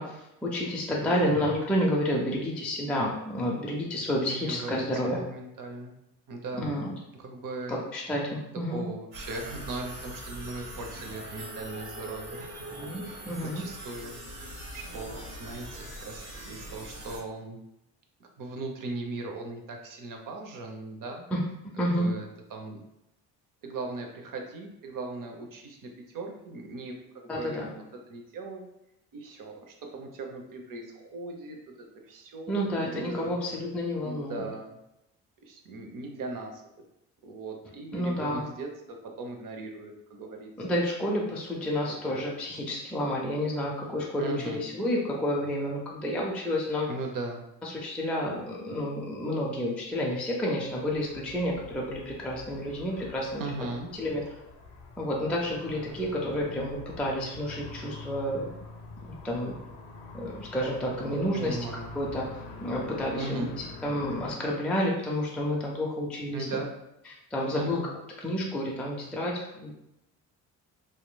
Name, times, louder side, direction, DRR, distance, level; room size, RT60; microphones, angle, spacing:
voice 1, 0.0-5.2 6.6-6.9 7.7-8.9 12.8-13.6 21.3-21.4 21.8-22.1 27.3-27.7 32.5-34.4 37.9-38.5 40.6-46.9 47.6-53.4 54.0-54.2 55.0-58.5 59.0-59.5 60.1-61.6 62.0-62.3 62.6-66.5 67.3-67.8 68.2-69.7, equal, 5° left, -3 dB, 0.4 m, -30 dB
voice 2, 1.0-1.5 4.3-5.9 6.3-6.8 7.1-7.8 8.7-14.2 14.7-17.6 18.4-21.3 22.0-22.8 23.6-27.0 27.2-28.7 29.1-31.6 32.0-33.3 34.0-34.8 35.4-36.6 37.2-40.5 41.7-42.2 44.2-44.6 46.9-47.4 53.4-53.9 61.3-61.9 63.1-63.5 66.3-66.7 67.5-67.9, right 2 dB, 40° right, 2 dB, 0.6 m, -38 dB
sound 1, 9.1-17.2, right 1 dB, 75° right, 1.1 m, -42 dB
sound 2, 50.6-64.3, left 3 dB, 60° left, 0.6 m, -45 dB
2.9 x 2.2 x 2.2 m, 0.86 s
hypercardioid pair, 45°, 49 cm